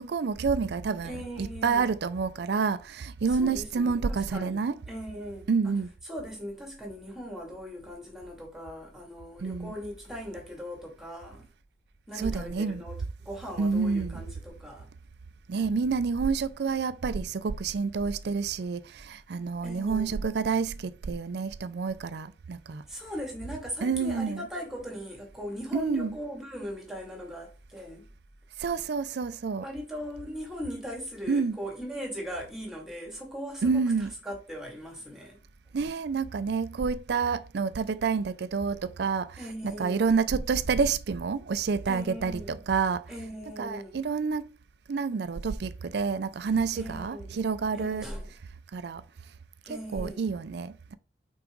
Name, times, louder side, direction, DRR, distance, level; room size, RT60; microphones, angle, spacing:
voice 1, 0.0-4.8 5.5-5.9 9.4-9.7 12.2-12.8 13.6-14.2 15.5-22.8 23.8-24.4 25.7-26.1 28.6-29.6 31.3-31.6 33.6-34.1 35.7-43.0 43.6-44.5 44.9-48.1 48.7-49.0 49.7-51.0, right 5 dB, 65° right, 0.4 m, -28 dB
voice 2, 1.0-1.9 3.3-4.6 4.9-5.7 6.0-11.5 12.1-14.9 19.6-20.2 22.9-28.1 29.6-35.4 39.4-40.1 41.9-42.6 43.1-44.0 46.7-47.4 47.7-48.3 49.6-50.3, equal, 5° right, 2.3 m, -39 dB
5.9 x 4.7 x 3.8 m
head